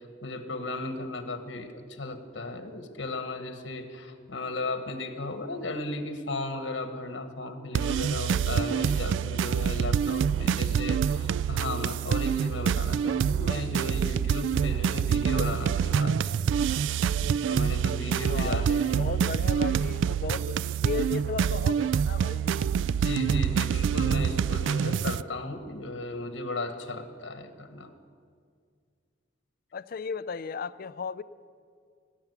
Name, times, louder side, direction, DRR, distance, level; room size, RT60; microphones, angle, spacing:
voice 1, 0.2-16.2 16.7-16.8 17.5-19.1 22.7-27.9, left 2 dB, 85° left, 7 dB, 1.3 m, -35 dB
sound 1, 7.8-25.2, right 7 dB, 80° right, 0.3 m, -26 dB
voice 2, 18.3-22.7 29.7-31.2, left 5 dB, 55° left, 14 dB, 0.4 m, -35 dB
19.0 x 7.1 x 9.2 m, 2.1 s
head